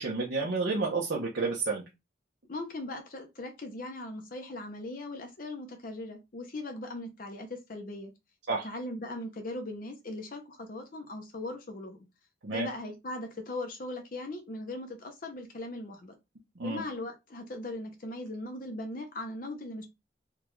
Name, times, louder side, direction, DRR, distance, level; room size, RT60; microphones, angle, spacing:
voice 1, 0.0-1.8 8.5-8.7 12.4-12.7 16.6-16.8, right 3 dB, 70° right, -2 dB, 0.8 m, -30 dB
voice 2, 2.5-8.1 8.6-12.0 12.5-16.1 16.6-19.8, left 2 dB, 45° left, 4 dB, 0.6 m, -39 dB
3.7 x 2.3 x 3.0 m, 0.23 s
head